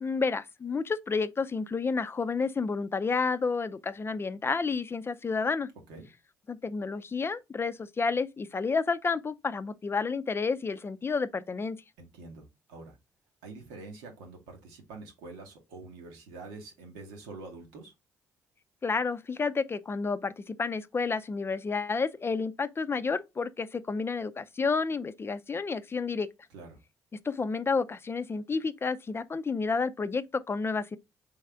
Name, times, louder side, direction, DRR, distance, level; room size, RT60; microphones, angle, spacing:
voice 1, 0.0-5.7 6.5-11.8 18.8-26.3 27.2-31.0, left 4 dB, 30° left, 0.4 m, -30 dB
voice 2, 12.0-13.0 13.4-17.9 26.5-26.8, right 3 dB, 85° right, 1.1 m, -46 dB
3.4 x 3.2 x 3.4 m
hypercardioid pair, 55°, 8 cm